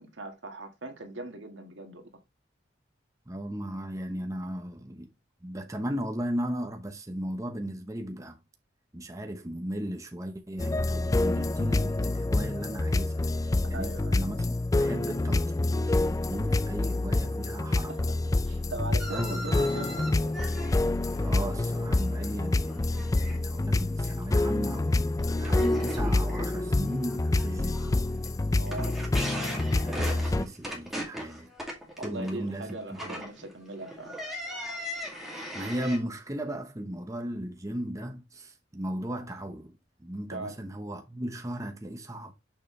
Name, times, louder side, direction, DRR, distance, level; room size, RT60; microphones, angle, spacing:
voice 1, 0.0-2.0 13.7-14.2 17.9-18.0 18.5-20.4 28.6-29.0 29.3-29.6 32.0-34.1 40.3-40.6, right 2 dB, 80° right, 1.7 m, -40 dB
voice 2, 3.3-5.1 5.4-8.4 8.9-15.8 16.1-18.1 19.1-19.6 21.2-28.0 29.8-31.5 32.0-33.2 35.2-39.7 40.0-42.3, right 1 dB, 15° right, 0.8 m, -36 dB
sound 1, 10.6-30.4, left 2 dB, 20° left, 0.3 m, -27 dB
sound 2, 19.0-22.3 22.6-23.4 23.7-24.1 24.6-24.7 25.2-36.0, equal, ahead, 2.2 m, -39 dB
6.7 x 5.5 x 3.1 m
head